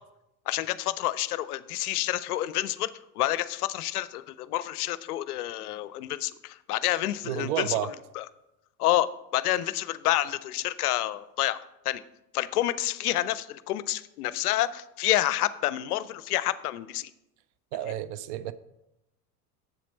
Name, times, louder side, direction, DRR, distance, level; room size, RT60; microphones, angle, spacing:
voice 1, 0.5-7.7 8.2-8.3 8.8-11.6 11.9-12.0 12.3-17.1, left 14 dB, 65° left, 0.5 m, -28 dB
voice 2, 7.3-7.9 17.7-18.5, right 11 dB, 50° right, 0.5 m, -30 dB
7.5 x 7.3 x 4.1 m
figure-of-eight pair, 80°, 48 cm